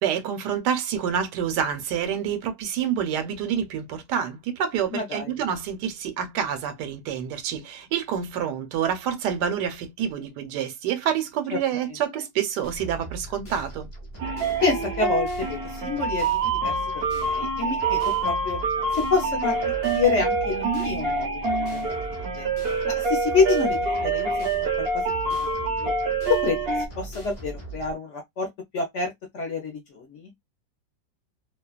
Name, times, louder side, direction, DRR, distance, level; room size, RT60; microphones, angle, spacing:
voice 1, 0.0-13.9, right 8 dB, 85° right, 1.2 m, -27 dB
voice 2, 4.9-5.3 11.5-11.6 14.6-18.6 18.9-21.3 21.6-22.5 22.8-25.0 25.8-25.9 26.3-26.6 27.0-28.5 28.7-30.3, left 4 dB, 60° left, 0.8 m, -27 dB
sound 1, 12.6-27.9, right 2 dB, 30° left, 0.6 m, -39 dB
sound 2, 14.2-26.9, right 3 dB, 60° right, 0.6 m, -26 dB
2.8 x 2.2 x 2.3 m
omnidirectional pair, 1.8 m